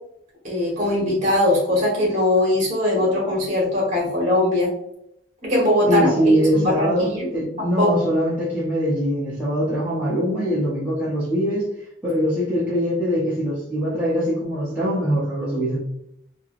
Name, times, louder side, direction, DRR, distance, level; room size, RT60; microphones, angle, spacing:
voice 1, 0.4-4.7 5.4-7.3 7.6-7.9, left 1 dB, 40° right, -3 dB, 1.3 m, -21 dB
voice 2, 5.9-11.7 12.0-15.8, equal, 10° right, -9 dB, 0.6 m, -22 dB
3.2 x 2.8 x 2.4 m, 0.77 s
head